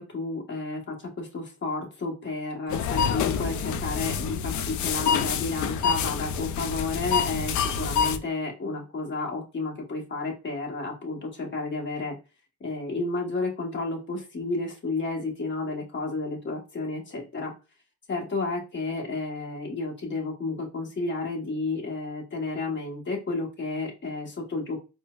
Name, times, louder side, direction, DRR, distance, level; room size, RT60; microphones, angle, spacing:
voice 1, 0.0-12.1 12.6-17.5 18.1-24.8, left 3 dB, 40° left, 0 dB, 1.1 m, -31 dB
sound 1, 2.7-8.2, left 7 dB, 70° left, 0.5 m, -27 dB
4.3 x 2.0 x 2.3 m, 0.30 s
cardioid pair, 90°, 30 cm